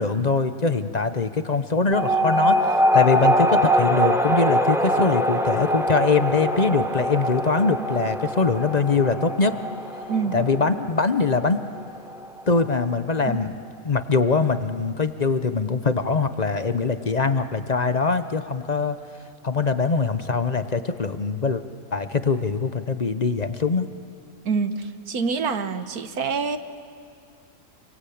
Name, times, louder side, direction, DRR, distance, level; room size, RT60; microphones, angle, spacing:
voice 1, 0.0-2.6 2.9-9.6 10.3-11.6 12.5-13.5 13.8-19.0 19.4-21.6 21.9-23.9, left 4 dB, 35° left, 10 dB, 0.8 m, -22 dB
sound 1, 1.9-12.8, equal, ahead, 0.9 m, -23 dB
voice 2, 24.5-26.6, right 5 dB, 80° right, 9 dB, 1.8 m, -26 dB
28.0 x 23.0 x 8.6 m, 2.4 s
omnidirectional pair, 1.6 m